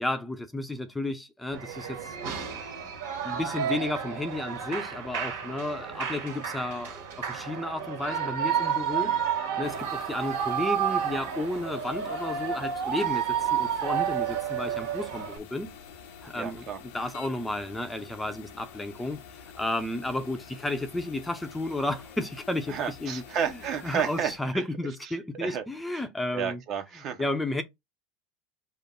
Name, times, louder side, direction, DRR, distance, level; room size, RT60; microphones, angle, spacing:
voice 1, 0.0-1.2 1.4-1.6 3.3-6.9 7.5-9.1 9.6-9.7 10.1-13.2 13.5-14.3 14.5-15.2 15.5-15.7 16.3-16.6 16.9-19.2 19.6-20.4 20.6-22.7 23.0-23.2 23.8-26.6 27.2-27.6, left 1 dB, 10° left, 0.6 m, -32 dB
Shout / Cheering, 1.5-15.4, right 8 dB, 75° right, 1.6 m, -31 dB
sound 1, 9.6-24.4, left 7 dB, 70° left, 0.8 m, -48 dB
voice 2, 16.3-16.8 22.7-24.6 25.4-25.6 25.9-26.0 26.3-27.3, right 8 dB, 50° right, 1.1 m, -31 dB
5.2 x 2.0 x 3.7 m
hypercardioid pair, 100°, 0 cm